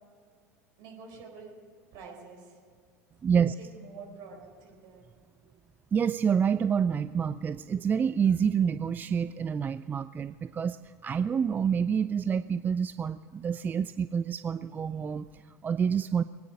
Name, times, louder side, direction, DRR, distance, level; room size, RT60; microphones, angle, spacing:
voice 1, 0.8-1.6 1.9-2.6 3.3-5.1, right 4 dB, 50° right, 0 dB, 4.4 m, -48 dB
voice 2, 3.2-3.6 4.0-4.1 5.9-16.2, right 7 dB, 20° right, 13 dB, 0.3 m, -28 dB
23.0 x 9.5 x 5.3 m, 2.2 s
figure-of-eight pair, 75°, 9 cm